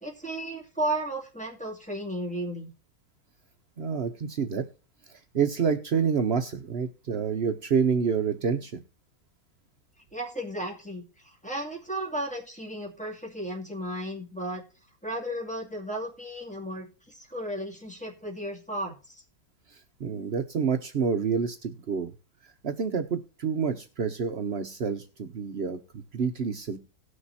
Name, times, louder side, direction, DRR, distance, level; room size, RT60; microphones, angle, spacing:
voice 1, 0.0-2.7 10.1-14.6 15.0-19.2, right 1 dB, 5° left, -2 dB, 2.2 m, -34 dB
voice 2, 3.8-4.7 5.1-8.8 20.0-22.1 22.6-26.8, right 6 dB, 80° right, 7 dB, 0.5 m, -28 dB
18.5 x 6.4 x 2.7 m, 0.34 s
omnidirectional pair, 2.2 m